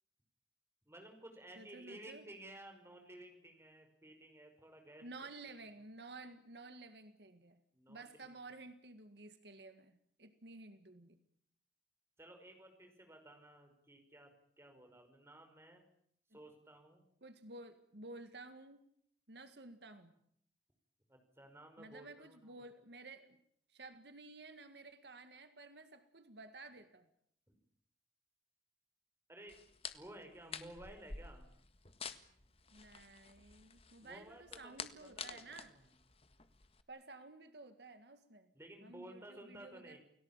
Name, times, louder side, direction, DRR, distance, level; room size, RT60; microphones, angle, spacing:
voice 1, 0.9-5.0 7.7-8.3 12.2-14.3 14.6-15.8 16.3-17.0 21.1-22.5 29.3-29.6 29.9-31.5 34.0-35.9 38.5-40.0, right 1 dB, 15° right, 5 dB, 5.5 m, -55 dB
voice 2, 1.6-2.3 5.0-7.6 7.9-11.2 16.3-16.4 17.2-18.8 19.3-20.1 21.8-23.4 23.7-27.1 32.7-35.7 36.9-38.5 38.8-40.0, right 3 dB, 70° right, 9 dB, 1.9 m, -53 dB
sound 1, 29.5-36.8, left 6 dB, 35° left, 1.7 m, -50 dB
29.5 x 18.0 x 9.0 m, 0.70 s
head